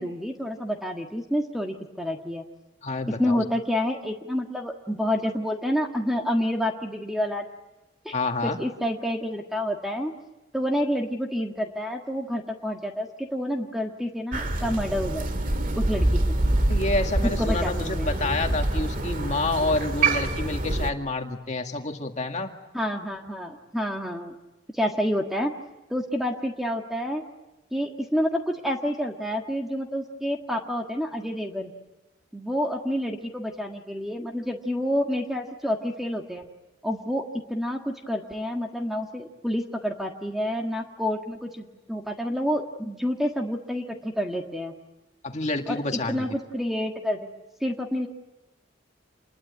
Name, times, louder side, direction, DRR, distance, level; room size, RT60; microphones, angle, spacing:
voice 1, 0.0-2.4 3.2-7.5 8.0-8.1 8.4-10.1 10.5-15.5 15.7-16.4 17.2-18.1 22.7-24.3 24.8-25.5 25.9-27.2 27.7-31.7 32.3-36.4 36.8-37.2 37.5-44.7 45.7-45.8 46.1-47.2 47.6-48.1, equal, ahead, 2 dB, 1.6 m, -28 dB
voice 2, 2.8-3.4 8.1-8.6 16.7-22.5 45.2-46.3, left 2 dB, 35° left, 4 dB, 2.0 m, -28 dB
Crow, 14.3-20.9, right 2 dB, 45° right, 1.9 m, -25 dB
28.0 x 21.0 x 9.5 m, 1.0 s
head